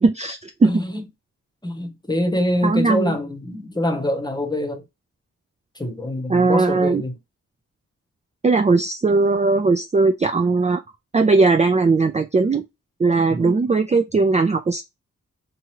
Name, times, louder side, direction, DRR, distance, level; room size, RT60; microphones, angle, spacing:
voice 1, 0.0-0.7 2.6-3.2 6.3-7.0 8.4-10.8 11.1-12.6 13.0-14.8, right 3 dB, 20° right, 0.4 m, -18 dB
voice 2, 0.6-1.0 1.6-4.8 5.7-7.1 13.3-13.7, left 1 dB, 15° left, 1.0 m, -25 dB
3.0 x 2.4 x 2.8 m
wide cardioid pair, 80°, 32 cm